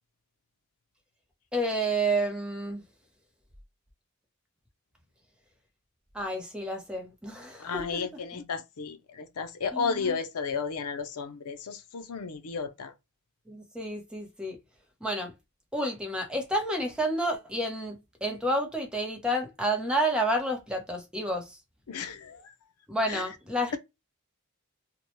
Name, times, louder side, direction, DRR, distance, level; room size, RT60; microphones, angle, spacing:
voice 1, 1.5-2.8 6.1-8.0 9.7-10.0 13.5-14.6 15.0-15.3 15.7-18.0 18.2-21.5 22.9-23.8, right 1 dB, 5° right, 0.8 m, -30 dB
voice 2, 7.6-12.9 21.9-22.4 23.1-23.2, left 5 dB, 85° left, 0.6 m, -33 dB
3.0 x 2.2 x 3.0 m
head